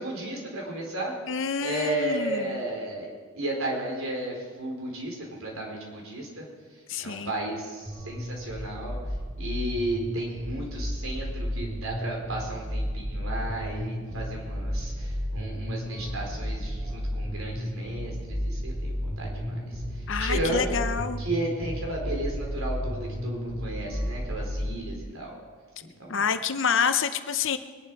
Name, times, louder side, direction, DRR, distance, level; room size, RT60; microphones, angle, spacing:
voice 1, 0.0-1.2 1.6-3.1 3.3-6.5 7.0-9.0 9.4-19.8 20.2-20.8 21.2-25.3 25.8-26.2, right 1 dB, 85° right, -1 dB, 3.9 m, -33 dB
voice 2, 1.3-2.6 6.9-7.3 20.1-21.2 26.1-27.6, left 6 dB, 60° left, 10 dB, 0.7 m, -28 dB
sound 1, 7.9-24.7, equal, 30° right, 4.2 m, -33 dB
22.5 x 11.0 x 4.7 m, 1.5 s
head